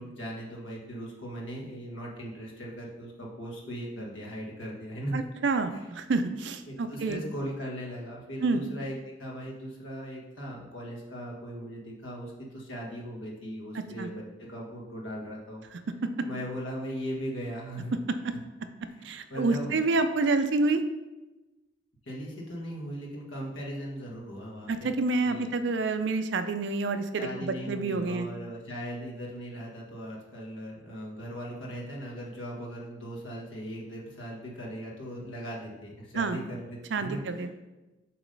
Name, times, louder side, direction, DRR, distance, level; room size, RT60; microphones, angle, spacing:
voice 1, 0.0-5.2 5.7-5.8 6.7-15.6 16.2-17.9 18.3-18.4 18.9-19.7 22.0-24.9 25.2-25.5 27.2-37.5, equal, 85° left, -2 dB, 1.6 m, -38 dB
voice 2, 5.1-7.2 8.4-8.6 13.7-14.1 16.0-16.3 19.0-20.8 24.7-28.3 36.1-36.4 36.9-37.5, right 3 dB, 65° right, 9 dB, 0.5 m, -28 dB
7.1 x 3.1 x 5.3 m, 1.1 s
head